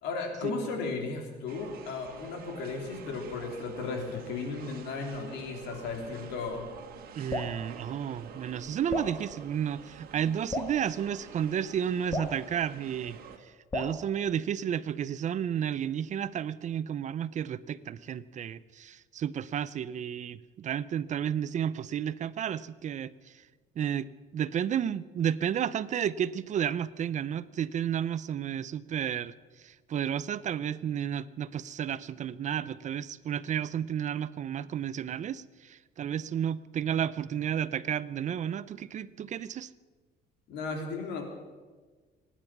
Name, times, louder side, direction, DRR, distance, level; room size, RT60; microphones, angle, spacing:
voice 1, 0.0-6.7 40.5-41.2, left 4 dB, 90° left, 3 dB, 3.3 m, -35 dB
sound 1, 1.5-13.4, right 7 dB, 65° right, 1.9 m, -48 dB
voice 2, 7.1-23.1 23.8-24.1 24.3-29.3 29.6-39.7, right 9 dB, 45° right, 17 dB, 0.6 m, -32 dB
Drip, 7.3-7.6 8.9-9.2 10.5-10.8 12.1-12.4 13.7-14.0, left 2 dB, 20° left, 1.5 m, -33 dB
24.0 x 10.0 x 6.1 m, 1.4 s
cardioid pair, 110°, 17 cm